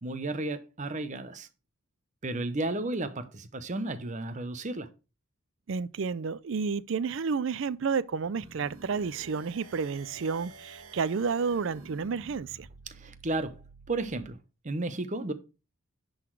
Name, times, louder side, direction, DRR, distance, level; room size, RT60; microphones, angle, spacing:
voice 1, 0.0-1.5 2.2-4.9 12.9-13.6 13.9-14.4 14.6-15.3, right 2 dB, 35° right, 0.7 m, -33 dB
voice 2, 5.7-12.7, right 5 dB, 60° right, 0.4 m, -31 dB
sound 1, 8.3-14.3, right 3 dB, 75° right, 1.3 m, -50 dB
10.5 x 4.0 x 4.6 m
head